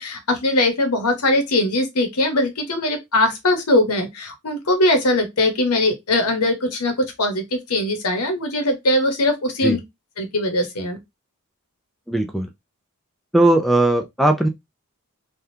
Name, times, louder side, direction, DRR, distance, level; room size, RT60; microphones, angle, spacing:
voice 1, 0.0-6.9 7.2-9.8 10.2-11.0, left 1 dB, 85° left, 1.0 m, -21 dB
voice 2, 12.1-12.5 13.3-14.5, right 1 dB, ahead, 0.4 m, -18 dB
3.4 x 2.3 x 2.7 m
head